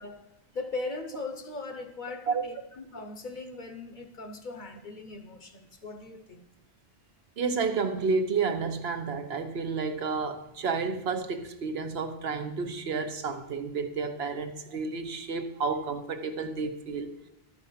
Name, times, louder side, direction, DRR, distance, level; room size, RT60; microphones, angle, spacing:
voice 1, 0.0-6.5, left 3 dB, 50° left, 0.9 m, -39 dB
voice 2, 7.4-17.1, right 4 dB, 70° right, 1.0 m, -31 dB
12.0 x 5.0 x 5.6 m
omnidirectional pair, 1.1 m